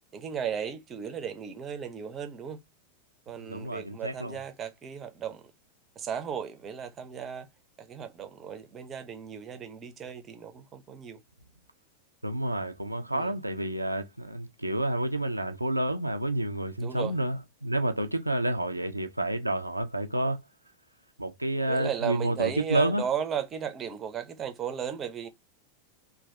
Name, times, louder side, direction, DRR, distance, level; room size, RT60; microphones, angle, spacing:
voice 1, 0.1-2.6 3.3-5.4 6.0-7.5 7.8-11.2 13.1-13.3 16.8-17.1 21.7-25.3, right 8 dB, 25° right, 0.6 m, -35 dB
voice 2, 3.4-4.4 12.2-20.4 21.2-23.0, right 1 dB, 85° right, 0.3 m, -29 dB
3.1 x 2.2 x 2.6 m
figure-of-eight pair, 90°, 0 cm